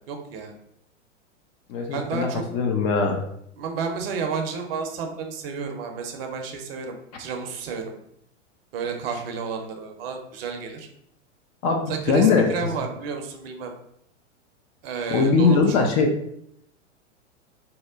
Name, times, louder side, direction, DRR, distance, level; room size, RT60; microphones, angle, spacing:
voice 1, 0.1-0.5 1.9-2.4 3.6-7.9 8.7-10.9 11.9-13.7 14.8-15.9, right 5 dB, 50° right, 4 dB, 0.7 m, -31 dB
voice 2, 1.7-3.2 11.6-12.5 15.1-16.1, left 4 dB, 30° left, 3 dB, 0.4 m, -21 dB
2.8 x 2.1 x 3.5 m, 0.73 s
hypercardioid pair, 100°, 37 cm